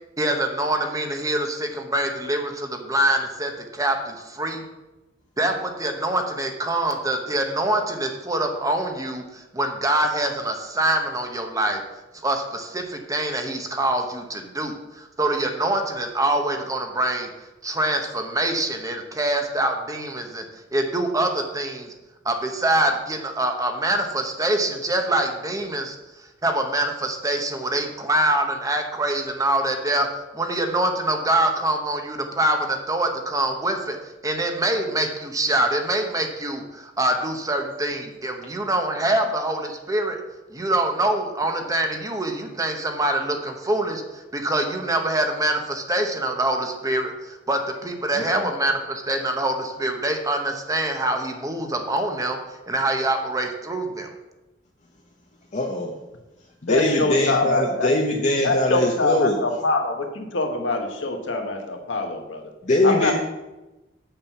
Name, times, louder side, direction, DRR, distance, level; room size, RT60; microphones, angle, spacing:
voice 1, 0.2-4.6 5.4-11.8 12.2-17.3 17.6-20.4 20.7-21.9 22.2-34.0 34.2-40.2 40.5-54.1, right 1 dB, 20° right, 4 dB, 1.0 m, -25 dB
voice 2, 48.2-48.5 55.5-55.9 56.6-59.4 62.6-63.1, left 1 dB, 40° left, 1 dB, 0.8 m, -22 dB
voice 3, 56.7-57.9 58.4-62.4 62.8-63.1, left 2 dB, 70° left, 4 dB, 1.3 m, -24 dB
7.5 x 6.9 x 5.8 m, 1.0 s
head